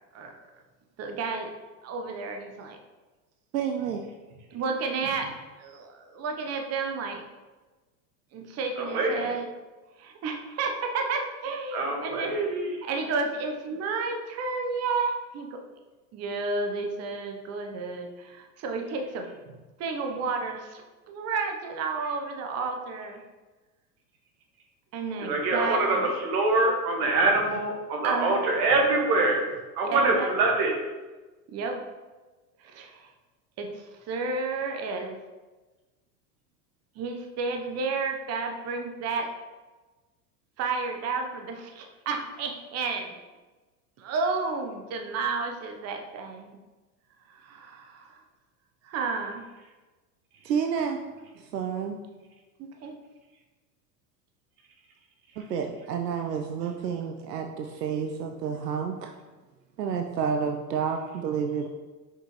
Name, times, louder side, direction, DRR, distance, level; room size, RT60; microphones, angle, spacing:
voice 1, 1.0-1.5 1.8-2.8 4.5-5.3 5.6-7.2 8.3-9.4 10.0-12.4 12.8-15.6 16.1-19.3 19.8-23.2 24.9-26.0 28.0-28.5 29.9-30.3 31.5-31.8 32.6-33.1 33.6-35.1 37.0-39.3 40.6-43.1 44.0-46.6 47.3-48.2 48.8-49.4 52.6-52.9, right 4 dB, 30° right, 3 dB, 0.8 m, -31 dB
voice 2, 3.5-4.0 50.4-51.0 51.4-52.0 55.4-59.1 59.8-61.7, right 7 dB, 85° right, 4 dB, 0.6 m, -30 dB
voice 3, 8.8-9.3 11.7-12.8 25.2-29.4 29.7-30.7, right 2 dB, 65° right, 1 dB, 1.7 m, -24 dB
6.1 x 5.2 x 3.1 m, 1.2 s
hypercardioid pair, 85°, 48 cm